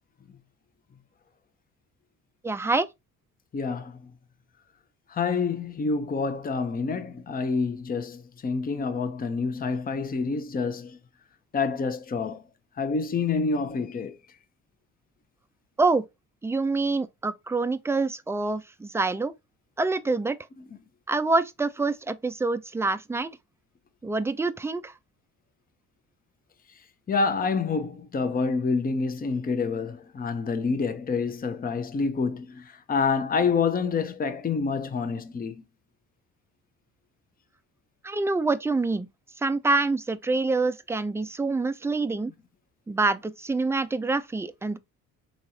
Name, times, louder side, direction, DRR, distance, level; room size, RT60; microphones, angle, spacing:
voice 1, 2.4-2.9 15.8-16.1 16.4-19.3 19.8-20.4 21.1-23.4 24.0-24.9 38.0-39.1 39.4-42.3 42.9-44.8, right 3 dB, 10° right, 0.4 m, -26 dB
voice 2, 3.5-3.9 5.1-11.0 11.5-12.4 12.8-14.2 27.1-35.5, left 4 dB, 30° left, 0.7 m, -27 dB
3.8 x 3.1 x 2.8 m
supercardioid pair, 75°, 31 cm